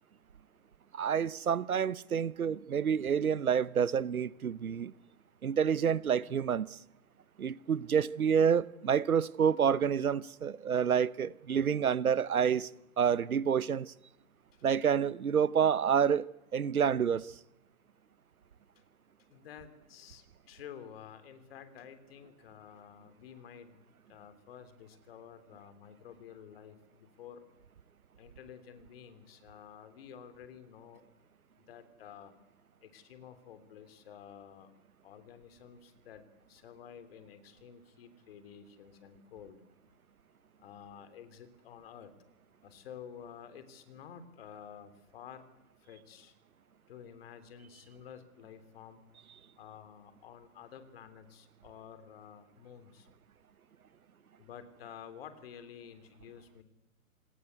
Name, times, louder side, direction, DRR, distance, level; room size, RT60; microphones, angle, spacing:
voice 1, 0.9-4.9 5.4-6.8 7.4-12.7 13.0-13.9 14.6-16.3 16.5-17.3, right 7 dB, 80° right, 1.0 m, -28 dB
voice 2, 19.3-23.8 24.1-27.5 28.2-31.0 31.6-32.3 32.8-34.7 35.0-39.6 40.6-42.1 42.6-45.4 45.8-46.3 46.9-49.0 49.6-53.1 54.4-56.6, left 8 dB, 45° left, 3.5 m, -51 dB
27.5 x 19.0 x 8.2 m
hypercardioid pair, 140°, 42 cm